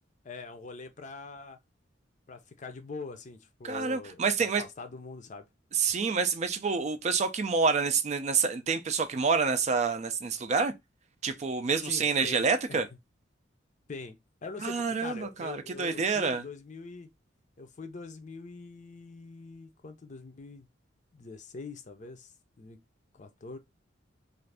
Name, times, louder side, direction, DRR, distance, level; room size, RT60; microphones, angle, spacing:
voice 1, 0.2-1.6 2.3-5.4 11.8-12.8 13.9-17.1 17.6-20.7 21.1-22.8 23.1-23.6, left 4 dB, 40° left, 0.5 m, -43 dB
voice 2, 3.6-4.6 5.7-10.7 11.2-12.9 14.6-16.4, right 5 dB, 35° right, 0.4 m, -28 dB
2.5 x 2.5 x 3.2 m
head